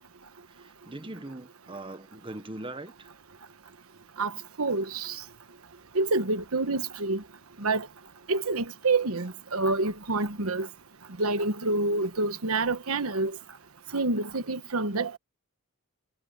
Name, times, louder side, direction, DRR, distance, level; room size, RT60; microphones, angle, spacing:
voice 1, 0.5-3.1, right 2 dB, 25° right, 1.3 m, -41 dB
voice 2, 4.2-5.2 5.9-7.2 7.6-7.9 8.3-10.7 11.2-13.4 13.9-15.2, right 3 dB, 75° right, 1.3 m, -27 dB
head